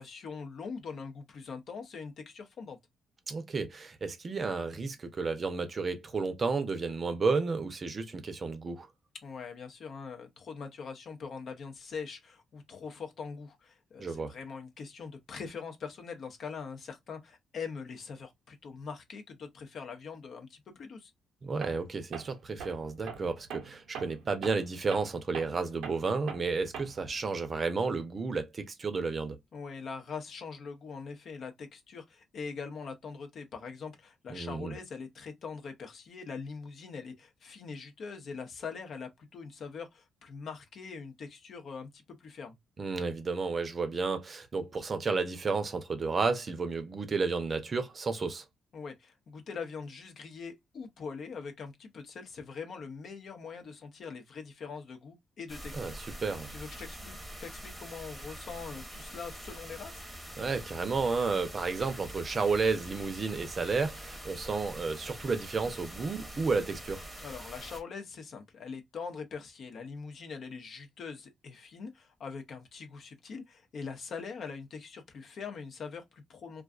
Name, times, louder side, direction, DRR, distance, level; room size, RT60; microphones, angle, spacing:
voice 1, 0.0-2.8 9.2-21.1 29.5-42.6 48.7-56.0 56.5-60.1 67.2-76.6, left 5 dB, 60° left, 0.6 m, -42 dB
voice 2, 3.3-8.9 14.0-14.3 21.4-29.4 34.3-34.8 42.8-48.4 55.7-56.5 60.4-67.1, right 4 dB, 40° right, 0.6 m, -32 dB
Tools, 21.6-21.9 22.1-27.2, right 7 dB, 85° right, 0.6 m, -43 dB
sound 1, 55.5-67.8, right 1 dB, 5° right, 0.8 m, -45 dB
2.4 x 2.3 x 2.3 m
cardioid pair, 90°, 0 cm